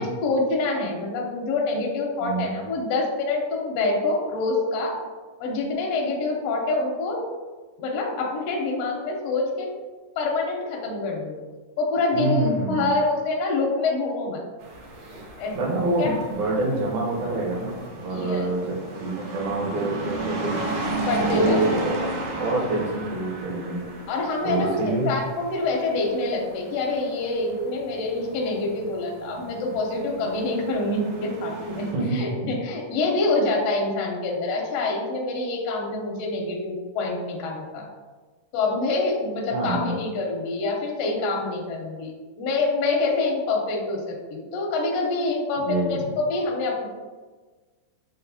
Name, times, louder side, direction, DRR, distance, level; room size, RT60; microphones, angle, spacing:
voice 1, 0.0-4.9 5.4-7.2 7.8-9.7 10.2-11.4 11.8-14.4 15.4-15.5 16.0-16.1 18.1-18.5 21.0-21.6 24.1-37.8 38.5-42.1 42.4-46.9, left 3 dB, 75° left, -1 dB, 1.4 m, -26 dB
voice 2, 2.2-2.6 12.1-12.9 15.6-18.6 19.0-20.6 21.3-22.1 22.4-23.8 24.4-25.2 31.9-32.2 39.5-39.9 45.6-46.0, right 2 dB, 70° right, -5 dB, 2.3 m, -26 dB
sound 1, 14.6-31.9, right 3 dB, 90° right, 1.3 m, -34 dB
6.2 x 2.4 x 2.7 m, 1.4 s
omnidirectional pair, 3.7 m